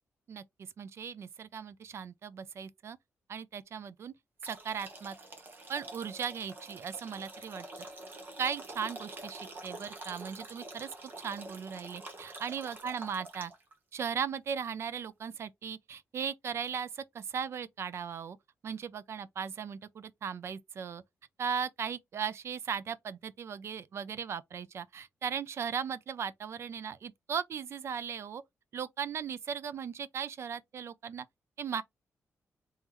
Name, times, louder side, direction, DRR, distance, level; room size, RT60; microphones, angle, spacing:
voice 1, 0.8-3.0 3.3-4.1 4.4-5.1 5.7-7.7 8.4-10.9 11.2-13.5 13.9-18.4 18.6-21.0 21.4-28.4 28.7-31.3 31.6-31.8, right 7 dB, 55° right, 0.4 m, -37 dB
sound 1, 4.4-13.7, right 2 dB, 35° right, 1.1 m, -47 dB
3.6 x 3.1 x 2.9 m
wide cardioid pair, 145°, 6 cm